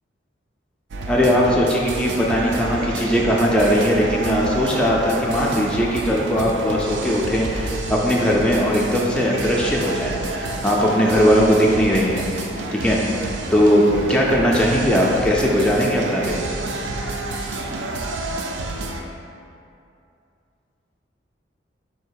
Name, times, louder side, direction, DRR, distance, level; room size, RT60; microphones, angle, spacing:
sound 1, 0.9-19.0, right 2 dB, 80° right, 0.4 m, -29 dB
voice 1, 1.1-12.3 12.7-13.0 13.5-13.8 14.1-16.4, equal, 5° left, -4 dB, 0.3 m, -19 dB
4.0 x 2.8 x 4.6 m, 2.6 s
head